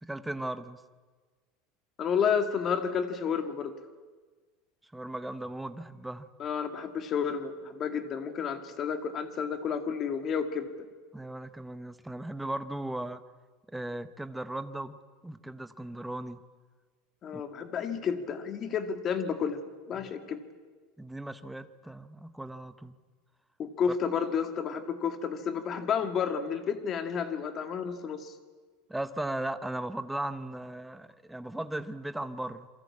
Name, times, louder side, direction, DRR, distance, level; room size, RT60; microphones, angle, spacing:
voice 1, 0.0-0.8 4.8-6.3 11.1-13.2 13.7-15.0 15.2-16.4 17.3-17.4 20.0-20.1 21.0-23.0 28.9-32.7, right 1 dB, 5° right, 11 dB, 0.9 m, -37 dB
voice 2, 2.0-3.7 6.4-10.7 17.2-19.6 19.9-20.4 23.6-28.3, left 7 dB, 25° left, 8 dB, 2.0 m, -31 dB
28.0 x 23.0 x 8.5 m, 1.4 s
supercardioid pair, 170°, 0 cm